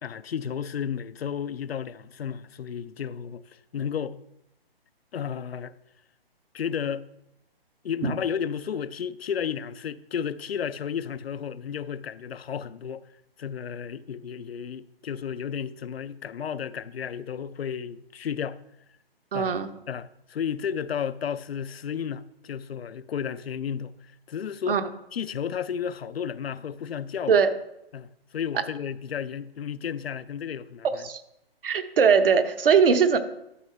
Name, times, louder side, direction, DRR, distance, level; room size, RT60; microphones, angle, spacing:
voice 1, 0.0-4.2 5.1-5.8 6.5-7.1 7.8-13.1 13.4-18.6 19.3-19.6 19.9-24.8 25.1-27.4 27.9-31.1, left 8 dB, 80° left, 0.5 m, -33 dB
voice 2, 19.3-19.7 24.7-24.8 27.3-27.5 31.0-31.2 31.6-33.2, right 6 dB, 65° right, 1.0 m, -20 dB
12.5 x 6.3 x 3.3 m
hypercardioid pair, 145°, 31 cm